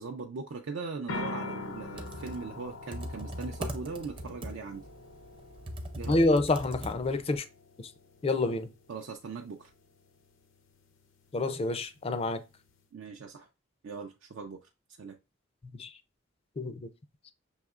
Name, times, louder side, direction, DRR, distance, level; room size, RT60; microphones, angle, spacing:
voice 1, 0.0-4.8 6.0-6.2 8.9-9.7 12.9-13.5 13.8-14.7 15.0-15.1, right 4 dB, 70° right, 0.4 m, -40 dB
sound 1, 1.1-12.8, left 3 dB, 80° left, 0.6 m, -45 dB
Computer keyboard, 1.8-7.4, equal, 25° right, 0.6 m, -40 dB
voice 2, 6.1-7.4 7.8-7.9 8.2-8.7 11.3-12.4 15.8-15.9 16.6-16.9, left 2 dB, 30° left, 0.4 m, -28 dB
6.3 x 2.8 x 2.4 m
head